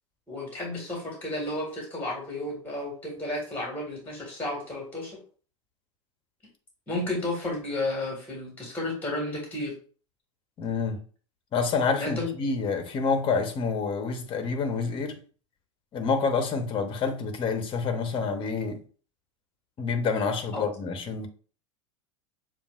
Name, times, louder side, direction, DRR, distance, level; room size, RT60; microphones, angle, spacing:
voice 1, 0.3-5.2 6.9-9.7 12.0-12.3 20.5-20.7, left 1 dB, 10° left, 1.9 m, -32 dB
voice 2, 10.6-11.0 11.5-15.2 15.9-18.8 19.8-21.3, left 5 dB, 30° left, 0.9 m, -28 dB
6.9 x 2.5 x 2.4 m
hypercardioid pair, 90°, 17 cm